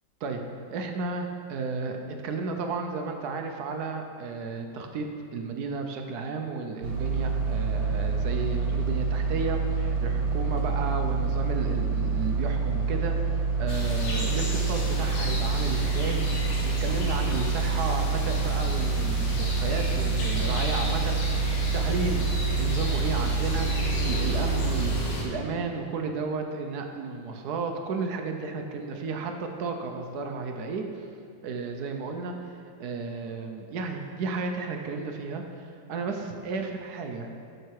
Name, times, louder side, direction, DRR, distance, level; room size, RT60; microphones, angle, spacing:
voice 1, 0.7-2.0 2.2-21.2 21.7-23.7 24.0-31.1 31.4-37.3, right 4 dB, 65° right, 4 dB, 1.1 m, -33 dB
sound 1, 6.8-25.0, right 4 dB, 85° right, 1.6 m, -27 dB
sound 2, 13.7-25.2, left 2 dB, 70° left, 1.8 m, -34 dB
7.8 x 6.6 x 4.6 m, 2.3 s
omnidirectional pair, 2.1 m